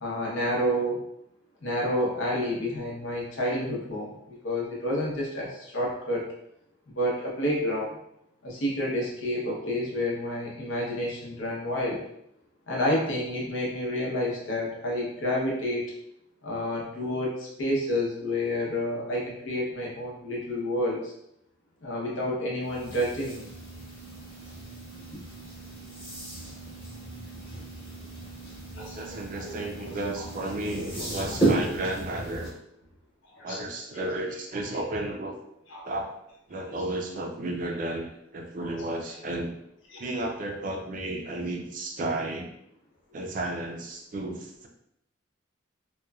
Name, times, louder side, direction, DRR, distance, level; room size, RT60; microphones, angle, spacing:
voice 1, 0.0-1.0 1.6-6.2 6.9-8.0 8.4-12.0 12.7-15.9 16.4-21.1 21.8-23.5 28.8-30.3 33.3-33.6 35.7-35.9 36.7-36.8 38.7-38.8 39.9-40.0, left 1 dB, 75° left, -3 dB, 0.7 m, -29 dB
sound 1, 22.6-32.5, right 2 dB, 20° left, 1.0 m, -34 dB
voice 2, 29.0-32.5 33.4-35.3 35.8-36.1 36.5-39.5 40.0-42.5 43.1-44.7, right 1 dB, 40° right, 3 dB, 0.3 m, -33 dB
2.9 x 2.2 x 2.3 m, 0.76 s
head